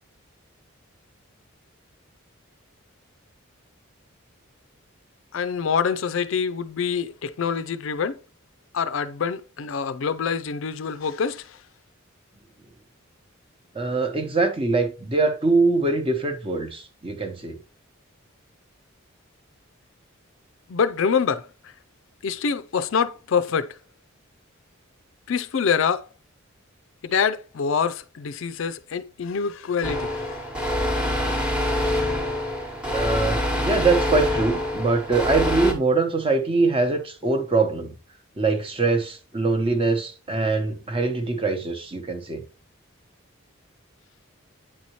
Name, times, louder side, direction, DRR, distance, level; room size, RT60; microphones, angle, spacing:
voice 1, 5.3-8.2 8.7-11.5 20.7-21.4 22.2-23.8 25.3-26.1 27.0-30.4, left 6 dB, 65° left, 0.4 m, -25 dB
voice 2, 13.7-17.6 32.9-37.9 38.4-42.4, right 3 dB, 25° right, 0.9 m, -23 dB
sound 1, 29.8-35.7, left 1 dB, 5° right, 1.0 m, -25 dB
8.9 x 4.2 x 3.0 m
head